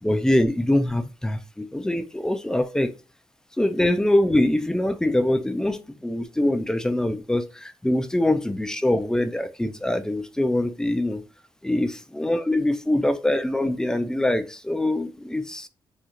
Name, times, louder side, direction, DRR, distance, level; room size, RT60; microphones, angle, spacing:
voice 1, 0.0-2.9 3.6-11.2 11.6-15.7, left 1 dB, 5° left, 0.3 m, -23 dB
3.8 x 2.4 x 2.8 m
cardioid pair, 100°, 9 cm